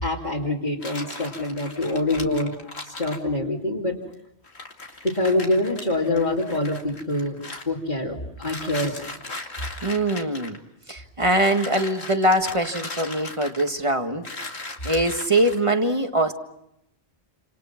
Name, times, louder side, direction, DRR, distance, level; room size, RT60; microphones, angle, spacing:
voice 1, 0.0-2.5 2.8-4.0 5.0-7.4 7.7-9.1, left 2 dB, 45° left, -4 dB, 3.0 m, -25 dB
sound 1, 0.8-3.2 4.1-4.2 4.4-7.6 8.4-10.6 11.4-13.8 14.2-15.6, left 2 dB, 80° left, 2.7 m, -38 dB
voice 2, 9.8-10.6 10.9-14.3 14.6-16.3, right 1 dB, 30° right, 5 dB, 1.8 m, -23 dB
29.5 x 27.5 x 5.9 m, 0.81 s
omnidirectional pair, 1.1 m